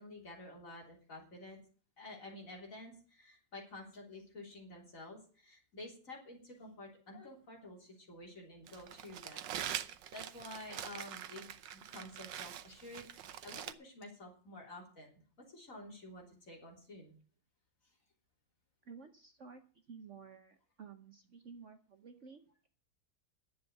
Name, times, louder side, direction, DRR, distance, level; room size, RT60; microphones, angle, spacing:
voice 1, 0.0-1.6 2.0-9.5 9.9-17.2 17.8-17.9, left 2 dB, 45° left, -1 dB, 3.9 m, -51 dB
Crumpling crinkling, 8.7-13.7, right 10 dB, 90° right, 1.5 m, -44 dB
voice 2, 18.8-19.6 19.9-22.7, right 5 dB, 50° right, 7 dB, 1.1 m, -53 dB
11.0 x 7.6 x 7.8 m, 0.41 s
omnidirectional pair, 1.9 m